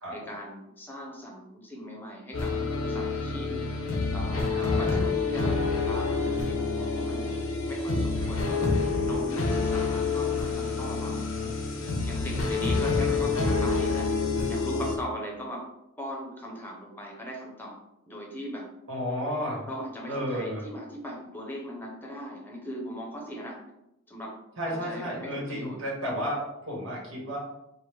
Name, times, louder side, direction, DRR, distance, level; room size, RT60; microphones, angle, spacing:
voice 1, 0.1-3.5 4.1-11.2 12.0-14.1 14.5-15.7 16.0-17.8 18.1-18.7 19.7-23.6 24.1-24.4 24.7-25.8, equal, 10° left, -1 dB, 0.7 m, -39 dB
sound 1, 2.3-15.0, left 4 dB, 85° left, 0.7 m, -27 dB
voice 2, 4.5-5.1 8.1-8.3 11.3-11.6 12.6-13.2 18.9-19.7 20.1-20.6 24.6-27.4, equal, 85° right, -4 dB, 1.2 m, -33 dB
4.7 x 2.1 x 3.4 m, 0.85 s
head